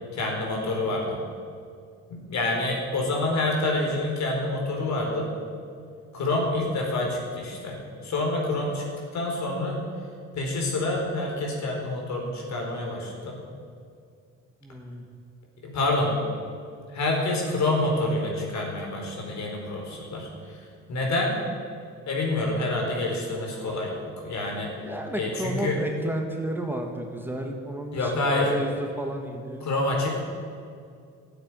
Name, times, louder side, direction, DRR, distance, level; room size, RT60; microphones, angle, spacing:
voice 1, 0.1-1.2 2.1-5.3 6.1-8.8 9.1-9.8 10.3-13.4 15.6-16.2 16.9-20.6 20.9-21.4 22.1-24.7 25.1-25.8 27.9-28.5 29.6-30.2, left 2 dB, 65° left, 0 dB, 4.6 m, -27 dB
voice 2, 14.6-15.1 24.7-29.7, right 1 dB, 5° right, 2 dB, 1.8 m, -32 dB
12.5 x 9.1 x 9.6 m, 2.2 s
cardioid pair, 90°, 30 cm